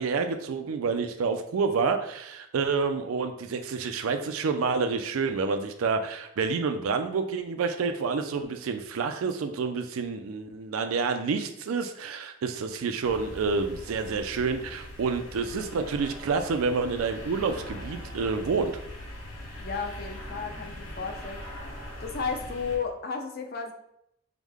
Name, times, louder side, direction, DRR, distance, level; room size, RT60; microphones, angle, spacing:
voice 1, 0.0-18.7, right 4 dB, 90° right, 7 dB, 0.4 m, -28 dB
sound 1, 13.0-22.8, left 1 dB, 80° left, 1.4 m, -41 dB
voice 2, 19.6-21.4 22.0-23.7, left 5 dB, 45° left, 4 dB, 0.5 m, -33 dB
4.8 x 2.1 x 3.5 m, 0.77 s
head